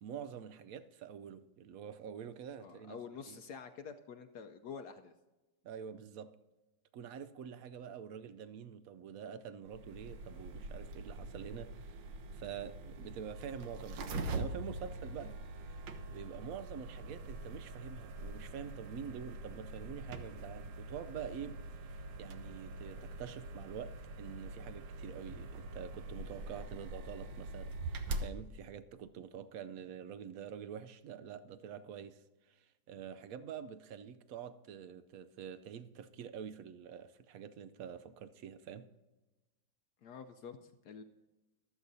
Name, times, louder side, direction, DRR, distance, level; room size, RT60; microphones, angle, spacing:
voice 1, 0.0-3.0 3.3-3.4 5.6-6.4 6.9-12.0 12.3-15.4 16.1-21.6 22.2-32.2 32.5-32.6 32.9-38.9, right 8 dB, 70° right, 0.8 m, -46 dB
voice 2, 2.6-5.1 40.0-41.0, left 6 dB, 70° left, 1.1 m, -48 dB
sound 1, 9.7-28.3, right 2 dB, 90° right, 1.7 m, -44 dB
24.0 x 8.2 x 2.7 m
omnidirectional pair, 2.0 m